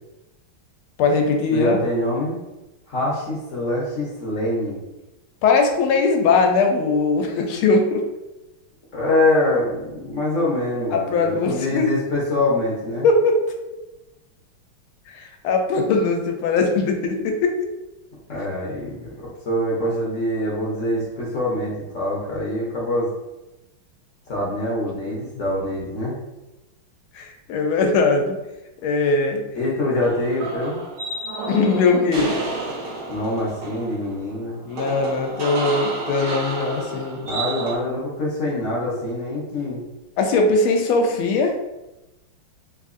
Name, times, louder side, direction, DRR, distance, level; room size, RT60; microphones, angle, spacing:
voice 1, 1.0-1.8 5.4-8.0 10.9-11.9 13.0-13.4 15.1-17.6 27.1-28.4 28.8-29.4 31.5-32.4 34.7-37.2 40.2-41.6, left 3 dB, 85° left, 3 dB, 1.5 m, -20 dB
voice 2, 1.5-2.4 2.9-4.8 8.9-13.1 18.3-23.1 24.3-26.2 29.5-30.8 33.1-34.6 37.2-39.8, left 1 dB, 60° left, -5 dB, 0.8 m, -24 dB
sound 1, 30.0-37.8, right 2 dB, 65° right, 1.2 m, -31 dB
3.8 x 2.7 x 2.5 m, 1.0 s
omnidirectional pair, 2.3 m